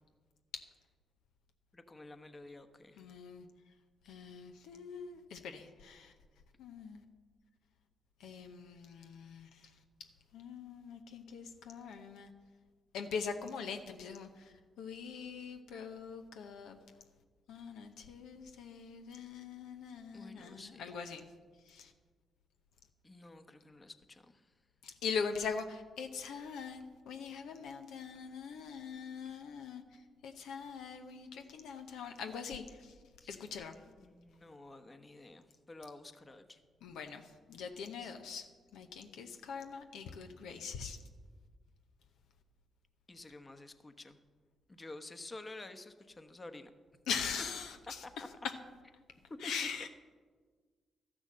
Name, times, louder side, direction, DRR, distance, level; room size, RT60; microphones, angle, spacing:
voice 1, 1.7-3.0 20.1-20.9 23.0-24.4 33.2-33.4 33.9-36.6 38.0-38.1 43.1-44.2 44.7-46.7 49.3-49.7, left 2 dB, 30° left, 8 dB, 1.1 m, -50 dB
voice 2, 3.0-3.5 4.0-6.1 6.6-7.0 8.2-9.7 10.3-12.3 12.9-16.8 17.5-21.3 21.7-21.9 24.8-29.8 30.2-32.9 33.3-33.7 36.8-38.5 38.7-41.0 47.1-48.0 49.4-49.9, left 6 dB, 80° left, 6 dB, 0.7 m, -42 dB
13.0 x 6.2 x 7.4 m, 1.5 s
supercardioid pair, 45°, 0 cm